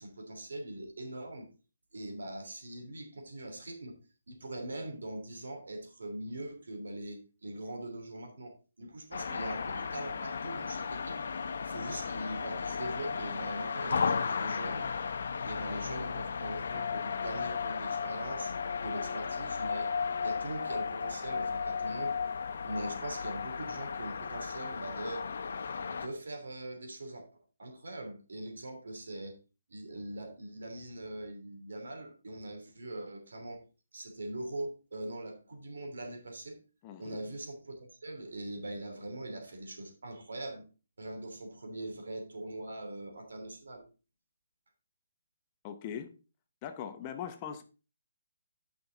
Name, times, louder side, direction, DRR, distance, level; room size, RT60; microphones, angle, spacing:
voice 1, 0.0-1.5 1.9-4.0 4.3-11.2 11.6-14.8 15.4-18.5 18.8-19.9 20.2-22.2 22.6-25.3 25.9-27.2 27.6-29.3 29.7-33.6 33.9-36.6 37.0-40.7 41.0-43.8, right 1 dB, 90° right, 3.0 m, -42 dB
sound 1, 9.1-26.1, left 5 dB, 60° left, 0.8 m, -35 dB
voice 2, 36.8-37.3 45.6-46.1 46.6-47.6, left 8 dB, 20° left, 0.7 m, -41 dB
9.4 x 6.1 x 3.9 m
hypercardioid pair, 170°, 0 cm